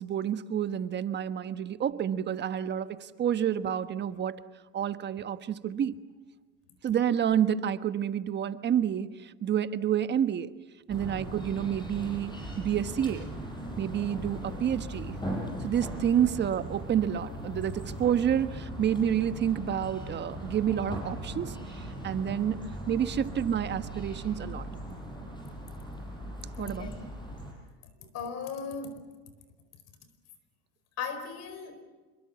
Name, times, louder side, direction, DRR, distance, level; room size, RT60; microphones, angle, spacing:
voice 1, 0.0-4.4 4.7-6.0 6.8-10.5 10.9-12.3 12.6-13.3 13.8-15.2 15.6-22.6 22.9-24.7 26.6-26.9, right 9 dB, 35° right, 12 dB, 1.3 m, -29 dB
sound 1, 10.9-27.5, right 1 dB, 15° left, 7.7 m, -39 dB
voice 2, 26.6-27.0 28.0-29.0 31.0-31.8, left 5 dB, 55° left, 9 dB, 4.5 m, -37 dB
27.0 x 23.0 x 7.1 m, 1.3 s
supercardioid pair, 120°, 30 cm